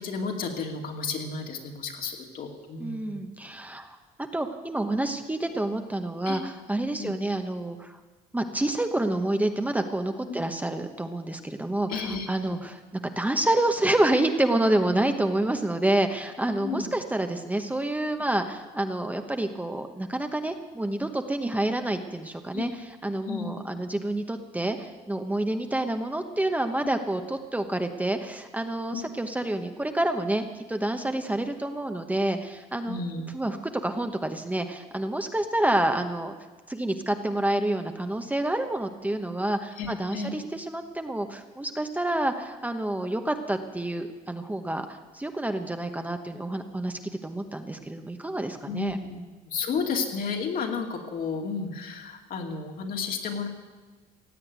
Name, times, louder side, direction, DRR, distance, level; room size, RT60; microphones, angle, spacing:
voice 1, 0.0-3.2 6.3-6.4 7.0-7.1 10.3-10.4 11.9-12.6 16.6-16.9 22.5-22.7 23.2-23.5 28.9-29.1 32.9-33.2 39.8-40.3 48.6-49.2 49.5-53.5, left 5 dB, 60° left, 2 dB, 2.6 m, -32 dB
voice 2, 2.8-4.0 4.3-8.0 8.3-12.0 12.3-12.8 13.2-33.0 33.3-33.6 33.8-36.3 36.7-49.0, right 1 dB, 10° right, 6 dB, 1.0 m, -28 dB
16.5 x 8.6 x 9.5 m, 1.3 s
cardioid pair, 110°, 17 cm